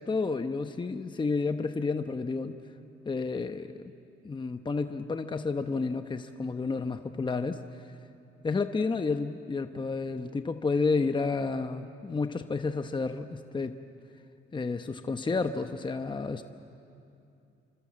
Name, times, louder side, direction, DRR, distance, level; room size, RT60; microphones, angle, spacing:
voice 1, 0.0-2.6 3.1-3.9 4.2-7.6 8.4-13.7 14.5-16.4, left 4 dB, 25° left, 8 dB, 0.9 m, -31 dB
28.0 x 25.0 x 7.5 m, 2.7 s
cardioid pair, 90°, 20 cm